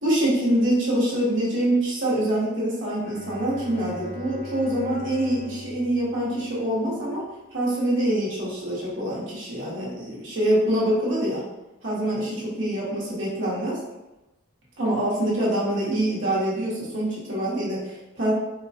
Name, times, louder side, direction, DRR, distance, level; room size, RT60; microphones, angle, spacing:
voice 1, 0.0-7.2 7.5-11.4 11.8-13.8 14.8-18.3, right 1 dB, 60° right, -6 dB, 1.2 m, -25 dB
Bowed string instrument, 3.0-7.0, left 2 dB, 75° left, 0.7 m, -41 dB
4.4 x 2.2 x 2.8 m, 0.98 s
head